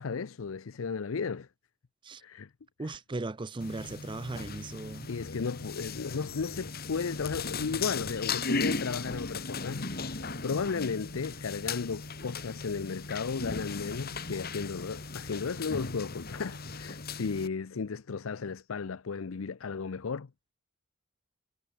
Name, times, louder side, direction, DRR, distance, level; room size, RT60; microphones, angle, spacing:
voice 1, 0.0-1.5 2.2-2.5 2.8-3.0 5.1-20.3, left 5 dB, 75° left, 0.6 m, -34 dB
voice 2, 2.8-5.1, right 2 dB, 25° right, 0.5 m, -37 dB
sound 1, 3.6-17.5, left 4 dB, 45° left, 2.4 m, -37 dB
head